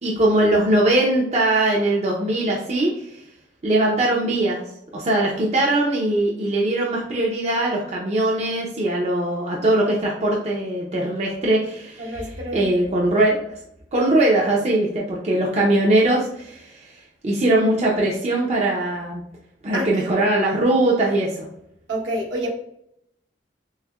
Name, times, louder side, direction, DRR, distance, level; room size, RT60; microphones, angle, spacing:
voice 1, 0.0-2.9 3.6-4.6 4.9-13.4 13.9-16.8 17.2-19.2 19.6-21.5, right 1 dB, 40° right, -3 dB, 0.6 m, -21 dB
voice 2, 12.0-12.7 19.7-20.1 21.9-22.5, right 1 dB, 75° right, -2 dB, 1.3 m, -28 dB
6.3 x 2.1 x 2.3 m, 0.75 s
head